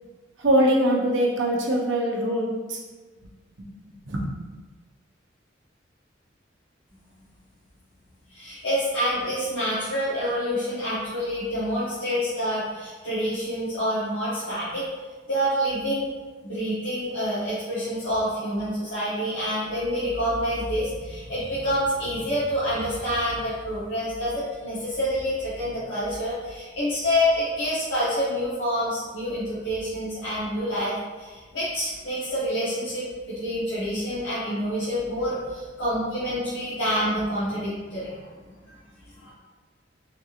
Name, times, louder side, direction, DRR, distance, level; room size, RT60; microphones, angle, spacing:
voice 1, 0.4-2.8 4.1-4.2, right 1 dB, 75° right, -1 dB, 0.6 m, -22 dB
voice 2, 8.3-14.8 15.3-16.1 16.4-38.2 39.2-39.3, equal, 85° left, -11 dB, 0.9 m, -27 dB
3.4 x 2.8 x 2.4 m, 1.3 s
head